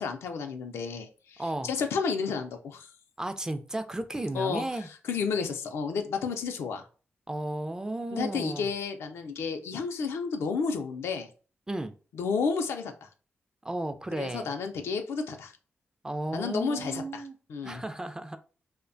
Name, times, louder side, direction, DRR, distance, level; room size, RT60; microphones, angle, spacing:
voice 1, 0.0-2.9 4.3-4.6 5.1-6.8 8.1-11.3 12.1-13.1 14.2-15.5 16.3-17.2 17.5-17.8, left 5 dB, 85° left, 0.4 m, -31 dB
voice 2, 1.4-1.7 3.2-4.9 7.3-8.7 11.7-11.9 13.6-14.5 16.0-17.4 17.6-18.4, right 1 dB, 15° right, 0.3 m, -34 dB
2.6 x 2.1 x 2.5 m
cardioid pair, 65°, 4 cm